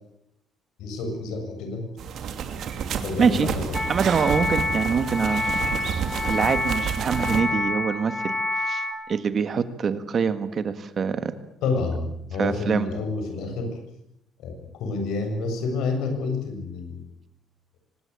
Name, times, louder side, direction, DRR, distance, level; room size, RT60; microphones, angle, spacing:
voice 1, 0.8-1.9 3.0-4.0 11.6-13.8 14.4-17.0, left 3 dB, 80° left, 5 dB, 7.6 m, -29 dB
sound 1, 2.0-7.4, right 7 dB, 50° right, 2.7 m, -30 dB
sound 2, 3.7-8.9, left 2 dB, 10° left, 4.8 m, -28 dB
voice 2, 3.9-5.4 6.2-11.3 12.4-12.9, right 6 dB, 30° right, 11 dB, 1.6 m, -25 dB
24.5 x 20.5 x 8.3 m, 0.78 s
cardioid pair, 175°, 0 cm